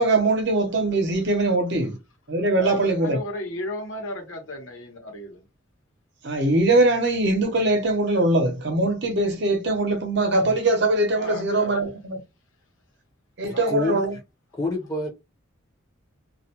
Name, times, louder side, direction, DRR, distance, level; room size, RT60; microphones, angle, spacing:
voice 1, 0.0-1.9 2.3-3.2 6.2-12.2 13.4-14.2, right 2 dB, 60° right, 0.8 m, -22 dB
voice 2, 2.5-5.4 11.1-11.8 13.5-13.7, left 1 dB, 80° left, 1.0 m, -34 dB
voice 3, 13.4-14.0 14.6-15.1, left 2 dB, 15° left, 0.7 m, -27 dB
2.4 x 2.2 x 2.8 m
head